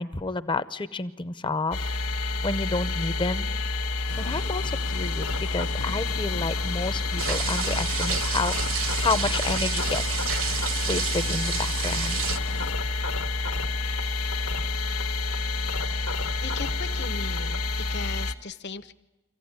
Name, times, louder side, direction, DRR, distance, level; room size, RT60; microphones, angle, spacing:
voice 1, 0.0-1.9 2.4-3.6 4.2-8.6 9.0-12.2, left 3 dB, 20° left, 13 dB, 0.7 m, -30 dB
sound 1, 1.7-18.3, left 3 dB, 70° left, 1.2 m, -28 dB
sound 2, 4.1-12.7, left 6 dB, 90° left, 0.7 m, -40 dB
sound 3, 7.2-12.4, right 10 dB, 60° right, 0.9 m, -31 dB
voice 2, 16.4-17.6 17.9-18.9, left 4 dB, 50° left, 13 dB, 0.9 m, -37 dB
25.5 x 15.0 x 9.6 m, 1.1 s
head